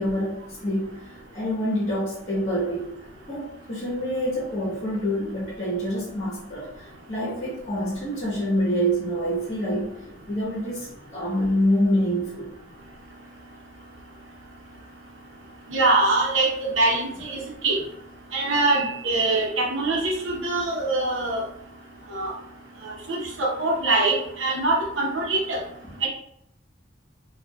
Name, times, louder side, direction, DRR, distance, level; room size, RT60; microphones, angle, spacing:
voice 1, 0.0-2.9 3.3-10.0 10.3-12.5 25.8-26.0, equal, 35° left, -7 dB, 1.1 m, -26 dB
voice 2, 15.7-17.8 18.3-21.4 22.1-22.3 22.8-25.6 26.0-26.1, right 2 dB, 65° right, -2 dB, 0.9 m, -23 dB
4.6 x 2.4 x 2.3 m, 0.75 s
head